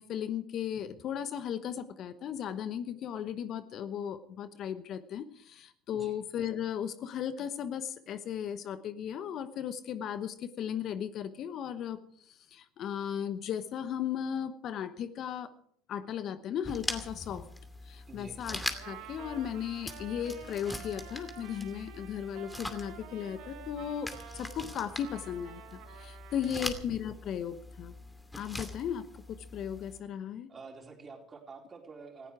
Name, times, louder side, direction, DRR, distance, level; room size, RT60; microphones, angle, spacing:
voice 1, 0.0-12.0 12.3-15.5 15.9-17.5 17.8-18.6 18.8-27.9 28.4-30.5, left 9 dB, 50° left, 12 dB, 1.0 m, -36 dB
sound 1, 16.6-30.0, left 2 dB, 10° left, 2.5 m, -42 dB
voice 2, 18.1-18.4 26.5-26.7 30.5-32.3, right 3 dB, 30° right, 2 dB, 4.3 m, -48 dB
Trumpet, 18.5-26.7, right 8 dB, 65° right, 4.4 m, -50 dB
18.0 x 15.5 x 4.8 m, 0.64 s
hypercardioid pair, 75°, 0 cm